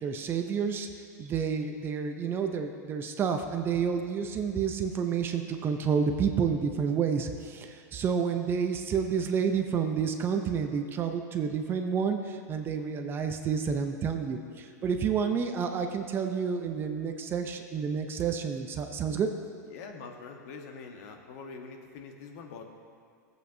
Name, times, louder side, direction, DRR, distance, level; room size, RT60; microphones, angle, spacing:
voice 1, 0.0-0.9 1.2-19.3, right 6 dB, 25° right, 6 dB, 0.6 m, -29 dB
voice 2, 19.7-22.6, left 5 dB, 55° left, 3 dB, 1.1 m, -44 dB
15.5 x 8.1 x 2.7 m, 2.3 s
supercardioid pair, 135°, 9 cm